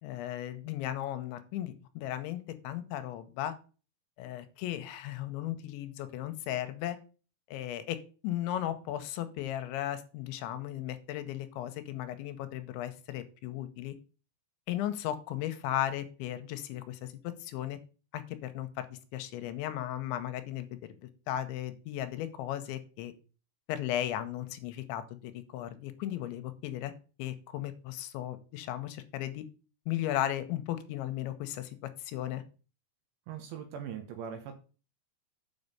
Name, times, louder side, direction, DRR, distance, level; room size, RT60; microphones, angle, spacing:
voice 1, 0.0-3.5 4.2-7.0 7.5-14.0 14.7-17.8 18.1-20.7 21.3-23.1 23.7-26.9 27.2-29.4 29.9-31.8 32.0-32.4, left 12 dB, 85° left, 10 dB, 3.0 m, -36 dB
voice 2, 33.3-34.6, right 8 dB, 75° right, 5 dB, 3.1 m, -40 dB
7.5 x 5.4 x 6.7 m, 0.36 s
omnidirectional pair, 5.4 m